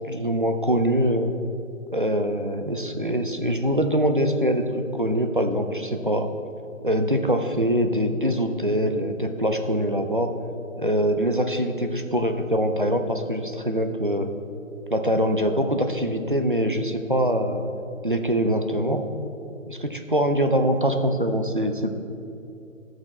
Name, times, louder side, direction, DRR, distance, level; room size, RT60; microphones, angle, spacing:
voice 1, 0.1-1.3 1.9-4.6 4.9-6.3 6.8-10.3 10.8-14.3 14.9-17.6 18.0-19.0 19.7-21.9, equal, 40° right, 6 dB, 0.5 m, -23 dB
11.0 x 6.1 x 4.2 m, 2.7 s
hypercardioid pair, 175°, 41 cm